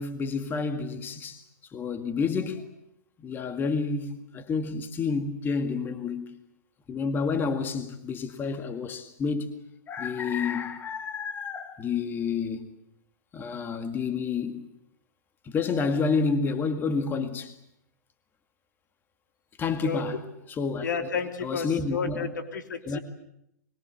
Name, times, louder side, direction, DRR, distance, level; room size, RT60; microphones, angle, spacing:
voice 1, 0.0-1.4 1.7-2.7 3.2-6.3 6.9-9.5 9.9-12.7 13.3-14.7 15.4-17.5 19.6-20.2 20.6-21.1 21.4-22.3 22.9-23.0, left 5 dB, 20° left, 1.9 m, -29 dB
voice 2, 20.8-23.0, left 5 dB, 85° left, 3.2 m, -31 dB
24.5 x 22.5 x 8.3 m
hypercardioid pair, 125°, 10 cm